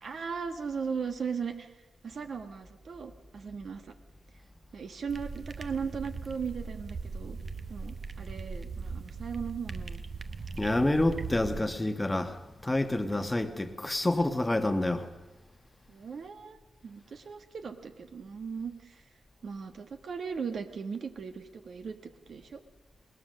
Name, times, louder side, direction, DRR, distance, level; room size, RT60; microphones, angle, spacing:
voice 1, 0.0-1.7 2.0-3.9 4.7-7.4 7.7-10.0 15.9-19.0 19.4-22.6, right 6 dB, 55° right, 7 dB, 1.4 m, -38 dB
sound 1, 5.1-11.6, right 4 dB, 40° right, 1.0 m, -39 dB
voice 2, 10.5-15.1, left 1 dB, 15° left, 8 dB, 1.2 m, -28 dB
21.0 x 19.5 x 6.5 m, 1.2 s
wide cardioid pair, 120°, 0 cm